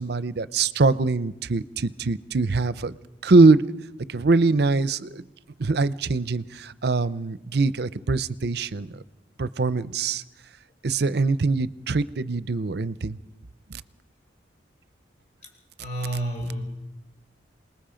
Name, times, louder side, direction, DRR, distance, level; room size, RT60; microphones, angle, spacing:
voice 1, 0.0-3.0 3.2-3.6 4.1-5.2 5.6-8.9 9.4-10.2 10.8-13.2 13.7-13.8, right 3 dB, 60° right, 16 dB, 0.6 m, -22 dB
voice 2, 15.8-16.7, right 1 dB, 40° left, 2 dB, 4.3 m, -30 dB
27.0 x 20.0 x 5.1 m, 0.97 s
head